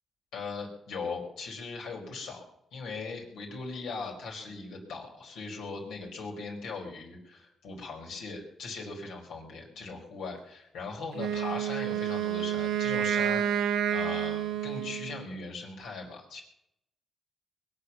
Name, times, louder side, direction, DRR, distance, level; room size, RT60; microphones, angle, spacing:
voice 1, 0.3-2.4 2.7-16.4, left 4 dB, 85° left, 0 dB, 4.9 m, -39 dB
Wind instrument woodwind instrument, 11.1-15.3, right 9 dB, 90° right, 1.1 m, -29 dB
22.0 x 8.6 x 7.0 m, 0.78 s
supercardioid pair, 60°, 0 cm